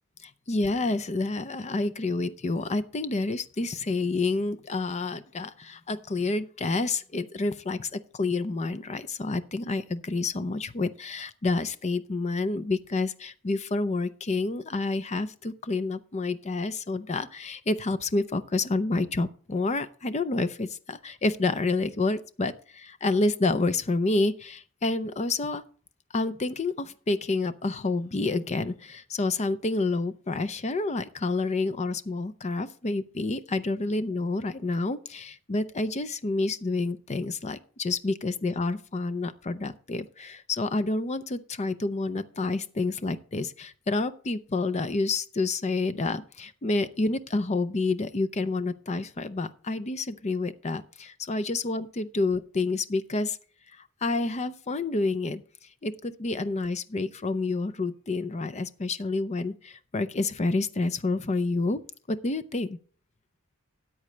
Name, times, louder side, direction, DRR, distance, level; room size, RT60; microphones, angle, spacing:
voice 1, 0.2-25.6 26.1-53.4 54.0-55.4 55.8-61.8 62.1-62.8, left 3 dB, 30° left, 13 dB, 0.6 m, -29 dB
13.5 x 8.6 x 3.2 m, 0.42 s
head